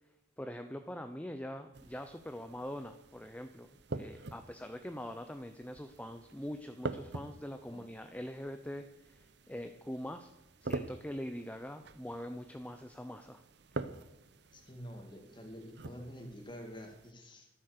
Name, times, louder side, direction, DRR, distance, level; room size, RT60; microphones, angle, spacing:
voice 1, 0.4-3.7 3.9-10.3 10.6-13.4, equal, 5° left, 7 dB, 0.7 m, -43 dB
sound 1, 1.7-17.1, right 3 dB, 60° right, 0.8 m, -46 dB
voice 2, 14.5-17.5, equal, 25° left, 3 dB, 2.5 m, -48 dB
14.0 x 12.5 x 6.8 m, 0.96 s
head